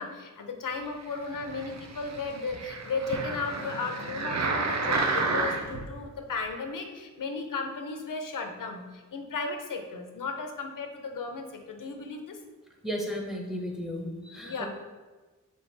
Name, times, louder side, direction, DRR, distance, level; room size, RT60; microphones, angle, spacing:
voice 1, 0.0-12.4 14.4-14.7, left 4 dB, 85° left, 5 dB, 0.6 m, -35 dB
sound 1, 1.3-5.9 6.5-6.6, right 3 dB, 60° right, 0.5 m, -31 dB
voice 2, 12.8-14.7, equal, ahead, 1 dB, 0.7 m, -34 dB
4.4 x 2.9 x 3.2 m, 1.3 s
wide cardioid pair, 70°, 31 cm